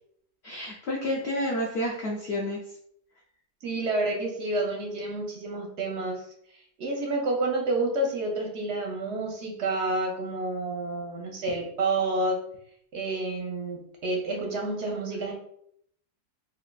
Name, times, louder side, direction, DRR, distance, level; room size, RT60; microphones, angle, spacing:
voice 1, 0.4-2.6, left 1 dB, 85° left, -2 dB, 0.5 m, -30 dB
voice 2, 3.6-6.2 6.8-12.4 12.9-15.3, right 2 dB, 65° right, 0 dB, 0.7 m, -29 dB
3.2 x 2.7 x 2.2 m, 0.71 s
omnidirectional pair, 1.7 m